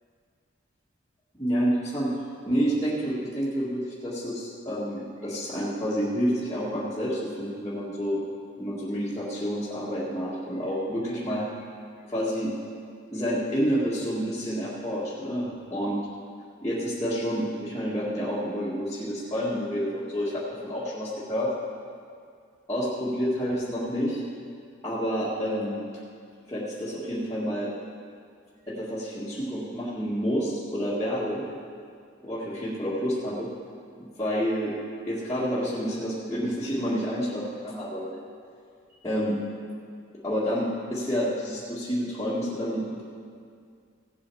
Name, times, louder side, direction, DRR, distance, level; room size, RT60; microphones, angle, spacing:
voice 1, 1.4-2.1 2.5-8.2 8.6-11.5 12.1-12.5 13.1-16.0 16.6-21.5 22.7-24.2 24.8-25.9 26.5-27.7 28.7-31.5 32.2-33.5 34.0-34.7 35.1-38.3 39.0-39.4 40.2-43.0, equal, 15° left, -10 dB, 2.0 m, -29 dB
17.0 x 7.7 x 4.8 m, 2.2 s
head